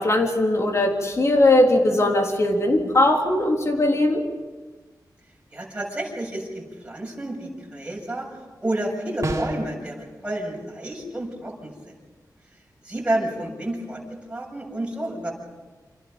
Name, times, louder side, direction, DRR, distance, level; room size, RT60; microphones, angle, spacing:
voice 1, 0.0-4.2, left 1 dB, 45° left, 2 dB, 3.7 m, -19 dB
voice 2, 5.5-8.3 8.6-11.7 12.8-14.0 14.3-15.3, right 1 dB, 15° right, -1 dB, 7.3 m, -30 dB
sound 1, 9.2-9.8, right 2 dB, 50° right, 3.8 m, -28 dB
29.5 x 26.5 x 5.4 m, 1.3 s
wide cardioid pair, 115°, 7 cm